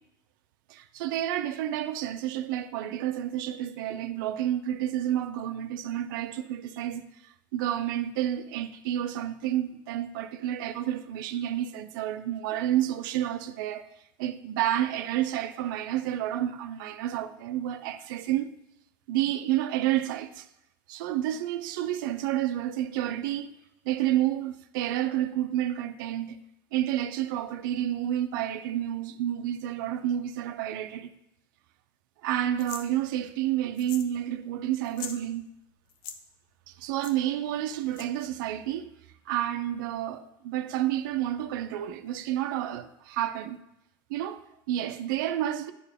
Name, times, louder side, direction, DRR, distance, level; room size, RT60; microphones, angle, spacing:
voice 1, 0.7-13.9 14.2-18.5 19.1-20.5 20.9-23.5 23.8-26.4 26.7-31.1 32.2-35.5 36.7-38.9 39.3-43.6 44.1-45.7, right 12 dB, 70° right, 0.5 m, -30 dB
sound 1, 32.6-32.9 33.8-34.2 34.4-34.5 34.8-35.2 35.9-36.2 37.0-37.1 37.9-38.3, left 8 dB, 70° left, 0.6 m, -41 dB
10.5 x 4.6 x 3.6 m
hypercardioid pair, 80°, 11 cm